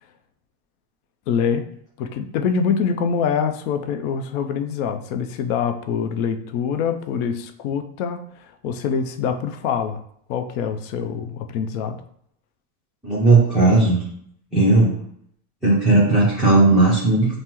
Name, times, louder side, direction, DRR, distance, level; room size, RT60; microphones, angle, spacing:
voice 1, 1.3-1.7 2.0-10.0 10.3-12.0, left 6 dB, 80° left, 7 dB, 0.6 m, -25 dB
voice 2, 13.0-14.0 14.5-15.0 15.6-17.4, right 2 dB, ahead, -10 dB, 0.6 m, -16 dB
5.4 x 2.1 x 3.0 m, 0.68 s
cardioid pair, 165°, 42 cm